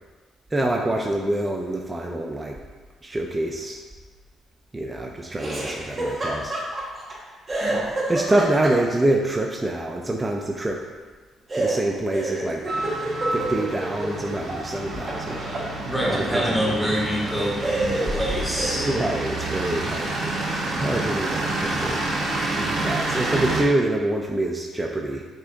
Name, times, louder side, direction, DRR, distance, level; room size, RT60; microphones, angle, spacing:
voice 1, 0.5-2.6 3.0-3.8 4.7-6.7 8.1-10.8 11.5-12.6 13.3-15.4 16.1-16.9 18.8-20.4 20.7-22.1 22.8-25.3, right 1 dB, 20° right, 0 dB, 0.3 m, -26 dB
Laughter, 5.4-7.2 7.5-9.1 11.5-14.6 14.9-16.6 17.2-17.3 17.6-19.0, right 2 dB, 35° right, 0.9 m, -29 dB
voice 2, 7.6-7.9 15.8-18.9, equal, 5° left, -5 dB, 0.8 m, -26 dB
sound 1, 12.7-23.6, right 2 dB, 70° right, 0.7 m, -28 dB
6.3 x 2.4 x 2.5 m, 1.3 s
cardioid pair, 90°, 0 cm